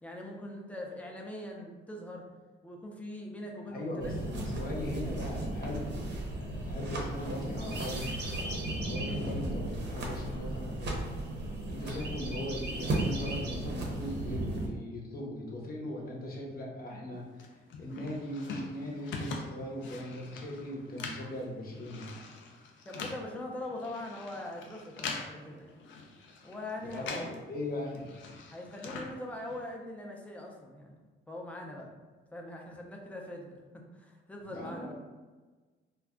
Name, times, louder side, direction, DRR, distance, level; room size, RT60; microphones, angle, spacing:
voice 1, 0.0-2.2 2.6-4.1 22.9-25.8 26.4-27.4 28.5-32.0 32.3-34.9, left 1 dB, 5° left, -1 dB, 0.5 m, -42 dB
voice 2, 3.7-6.1 6.4-8.1 8.7-11.0 11.6-17.4 17.8-22.2 26.8-28.0 34.5-34.9, left 1 dB, 50° left, -2 dB, 0.8 m, -39 dB
sound 1, 4.0-14.7, right 1 dB, 60° right, 0.8 m, -35 dB
sound 2, 17.4-27.4 27.7-29.8, left 4 dB, 75° left, 0.5 m, -43 dB
2.3 x 2.2 x 3.6 m, 1.3 s
cardioid pair, 90°, 20 cm